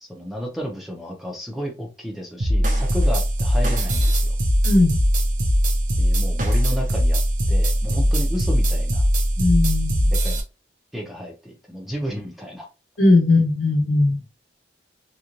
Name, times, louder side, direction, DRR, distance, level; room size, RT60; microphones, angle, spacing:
voice 1, 0.0-4.3 5.9-7.2 7.5-9.1 10.2-10.4 10.9-12.7, equal, ahead, 0.6 m, -32 dB
sound 1, 2.4-10.4, equal, 45° right, 0.6 m, -20 dB
voice 2, 4.6-5.0 9.4-10.1 13.0-14.2, left 2 dB, 75° left, 1.2 m, -18 dB
3.0 x 2.2 x 2.5 m
head